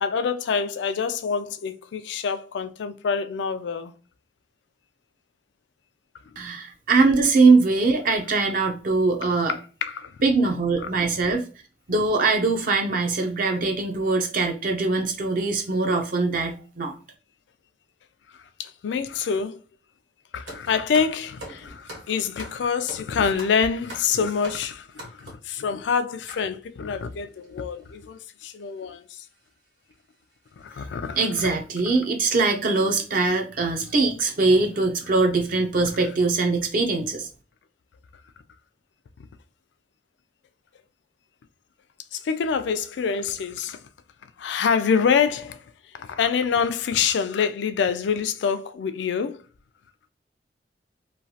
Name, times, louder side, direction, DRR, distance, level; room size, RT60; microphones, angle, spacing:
voice 1, 0.0-3.9 9.8-10.1 18.6-19.6 20.3-29.0 30.6-31.5 42.1-43.8 44.4-45.6 45.9-49.4, left 6 dB, 80° left, 0.3 m, -26 dB
voice 2, 6.4-9.6 10.2-11.4 11.9-16.9 31.2-37.3, right 3 dB, 50° right, 0.5 m, -22 dB
sound 1, 20.5-25.5 26.3-26.4 27.2-27.3 27.4-27.6 28.6-28.8 29.3-29.4 29.9-30.0 30.4-30.7 31.0-31.2, right 1 dB, 75° right, 1.3 m, -42 dB
3.0 x 2.3 x 2.7 m
head